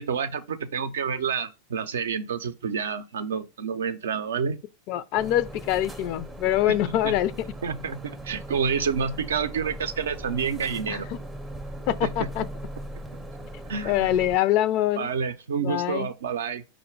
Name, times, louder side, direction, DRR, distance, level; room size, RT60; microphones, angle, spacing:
voice 1, 0.0-4.6 7.0-7.1 7.6-11.1 12.0-12.3 13.7-14.1 15.0-16.6, right 6 dB, 75° right, 0.5 m, -29 dB
voice 2, 4.9-7.3 10.9-11.0 11.9-12.4 13.9-15.1 15.6-16.1, left 12 dB, 50° left, 0.3 m, -24 dB
sound 1, 5.2-14.4, right 1 dB, 10° right, 0.5 m, -39 dB
4.8 x 2.1 x 4.5 m
hypercardioid pair, 95°, 0 cm